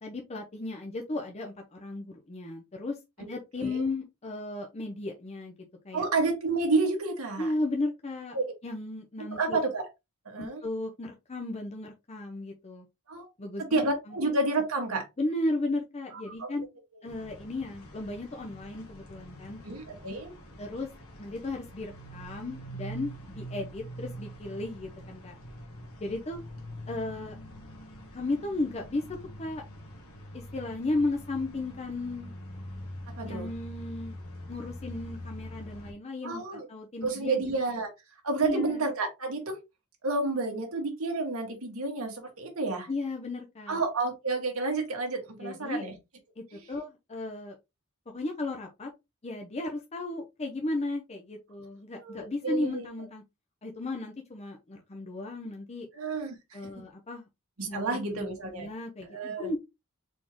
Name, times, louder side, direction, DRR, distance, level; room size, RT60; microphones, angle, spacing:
voice 1, 0.0-5.5 5.8-6.0 7.4-8.4 8.6-9.6 10.4-12.9 13.4-14.2 15.2-16.7 17.0-19.6 20.6-20.9 21.2-25.3 26.0-26.4 26.9-27.4 28.1-29.0 29.4-29.6 30.3-32.3 33.2-34.2 34.5-37.4 38.4-38.8 42.9-43.8 45.4-45.8 46.4-47.6 48.1-48.9 49.2-53.2 53.6-55.9 56.5-57.3 57.7-58.3 58.6-59.1 59.4-59.6, left 2 dB, 30° left, 2 dB, 0.7 m, -35 dB
voice 2, 5.9-7.5 8.3-8.5 9.2-9.9 10.2-10.6 13.1-13.3 13.6-15.1 16.1-16.5 19.6-20.3 33.2-33.5 36.2-36.7 37.0-37.9 38.2-39.6 40.0-42.9 43.7-45.9 52.0-52.9 55.9-56.6 57.6-58.7 59.1-59.5, right 3 dB, 70° right, 2 dB, 1.5 m, -30 dB
sound 1, 17.1-35.9, equal, 85° left, 1.4 m, -44 dB
4.2 x 3.6 x 3.0 m, 0.22 s
head